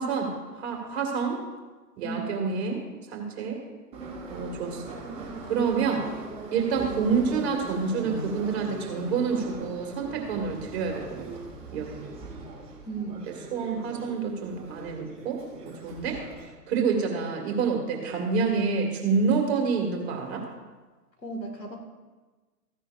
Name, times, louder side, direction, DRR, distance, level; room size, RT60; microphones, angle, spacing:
voice 1, 0.0-1.4 2.0-2.8 3.1-3.6 4.3-4.8 5.4-6.1 6.5-11.3 11.7-12.1 13.5-16.2 16.7-20.5, right 5 dB, 40° right, 2 dB, 2.3 m, -28 dB
voice 2, 2.0-2.4 12.8-13.3 21.2-21.8, right 3 dB, 90° left, 1 dB, 2.3 m, -35 dB
Subway metro underground, 3.9-16.4, right 2 dB, 10° right, 3.0 m, -40 dB
15.0 x 9.9 x 2.6 m, 1.3 s
figure-of-eight pair, 120°, 49 cm